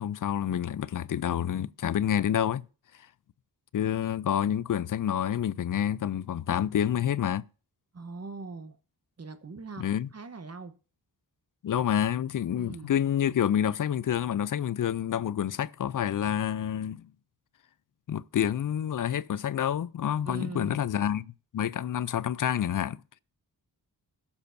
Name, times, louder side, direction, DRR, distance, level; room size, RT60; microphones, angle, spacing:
voice 1, 0.0-2.7 3.7-7.4 9.8-10.1 11.6-17.1 18.1-21.3 21.5-23.0, left 10 dB, 50° left, 0.5 m, -28 dB
voice 2, 7.9-8.8 9.2-10.7 12.6-13.0 13.3-13.4 20.2-20.8, right 4 dB, 40° right, 1.0 m, -41 dB
20.5 x 7.1 x 2.7 m
cardioid pair, 60°, 41 cm